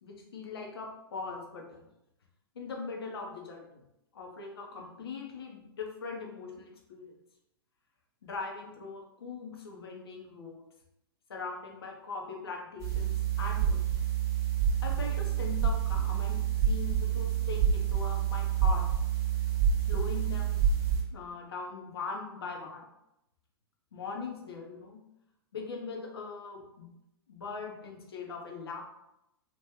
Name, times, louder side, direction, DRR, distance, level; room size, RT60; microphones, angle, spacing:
voice 1, 0.0-1.9 2.5-3.8 4.1-7.1 8.2-10.7 11.3-13.8 14.8-16.4 16.6-18.8 19.9-20.6 21.1-22.9 23.9-25.0 25.5-26.9 27.3-28.8, left 4 dB, 65° left, 0 dB, 0.9 m, -40 dB
sound 1, 12.8-21.0, right 8 dB, 20° right, 0.9 m, -28 dB
3.0 x 2.5 x 3.5 m, 0.87 s
figure-of-eight pair, 110°, 13 cm